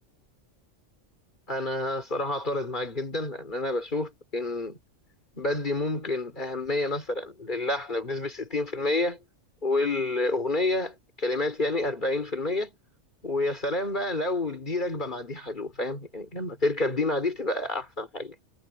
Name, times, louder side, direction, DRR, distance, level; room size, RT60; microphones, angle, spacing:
voice 1, 1.5-4.8 5.3-9.2 9.6-12.8 13.2-18.3, left 2 dB, 40° left, 4.3 m, -29 dB
omnidirectional pair, 1.3 m